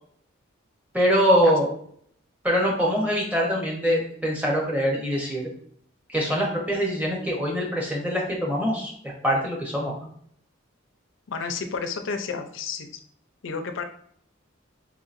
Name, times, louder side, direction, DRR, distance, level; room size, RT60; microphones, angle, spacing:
voice 1, 0.9-1.7 2.4-5.5 6.1-8.9 9.2-9.9, equal, 10° right, -3 dB, 0.8 m, -23 dB
voice 2, 11.3-12.9 13.4-13.8, left 5 dB, 70° left, 6 dB, 0.5 m, -31 dB
4.6 x 2.8 x 2.5 m, 0.64 s
head